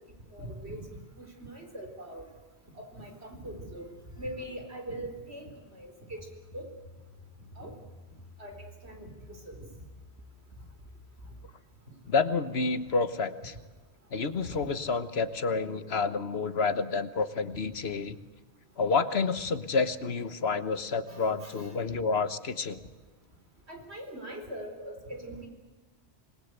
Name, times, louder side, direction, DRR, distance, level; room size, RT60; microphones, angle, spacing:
voice 1, 0.3-0.8 1.2-2.2 2.7-3.9 4.2-6.3 6.5-6.7 7.6-7.7 8.4-9.6 14.4-14.5 21.1-21.7 23.7-25.5, right 1 dB, 75° right, 4 dB, 4.6 m, -42 dB
sound 1, 6.2-11.5, left 2 dB, 25° left, 2.7 m, -51 dB
voice 2, 12.1-13.5 14.1-18.2 18.8-22.8, left 4 dB, 70° left, 12 dB, 1.4 m, -29 dB
26.5 x 20.5 x 8.2 m, 1.3 s
omnidirectional pair, 1.1 m